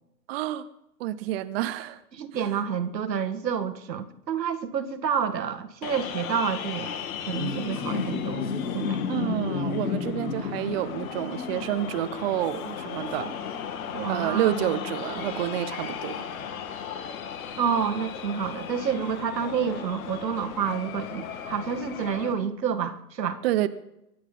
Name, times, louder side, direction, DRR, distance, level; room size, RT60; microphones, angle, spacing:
voice 1, 0.3-0.7 1.0-2.0 2.3-2.5 9.1-13.3 14.1-16.2 23.4-23.7, right 13 dB, 40° right, 0.7 m, -29 dB
voice 2, 2.2-6.9 7.3-9.0 13.9-14.5 17.6-23.4, right 7 dB, 85° right, 1.8 m, -29 dB
sound 1, 5.8-22.3, left 7 dB, 60° left, 2.6 m, -34 dB
23.5 x 9.7 x 5.4 m
hypercardioid pair, 135°, 49 cm